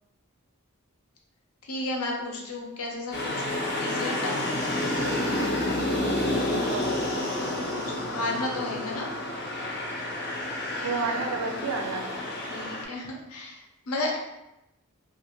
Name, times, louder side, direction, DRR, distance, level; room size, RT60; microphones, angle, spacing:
voice 1, 1.6-4.6 7.4-9.1 12.5-14.2, left 2 dB, 85° left, 0 dB, 0.6 m, -33 dB
sound 1, 3.1-12.8, left 1 dB, 50° left, 0.6 m, -29 dB
voice 2, 6.1-6.9 10.8-12.0, right 4 dB, 75° right, 3 dB, 0.4 m, -31 dB
2.5 x 2.4 x 2.9 m, 0.90 s
head